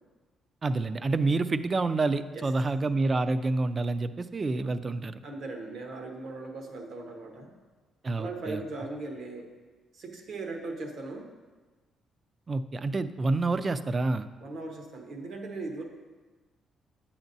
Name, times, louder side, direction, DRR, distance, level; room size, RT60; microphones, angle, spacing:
voice 1, 0.6-5.2 8.0-8.6 12.5-14.3, right 3 dB, 35° right, 12 dB, 0.4 m, -28 dB
voice 2, 5.2-7.5 8.2-9.5 9.9-11.3 14.4-15.8, right 2 dB, 70° right, 3 dB, 1.1 m, -38 dB
9.7 x 7.1 x 2.7 m, 1.3 s
cardioid pair, 90°, 0 cm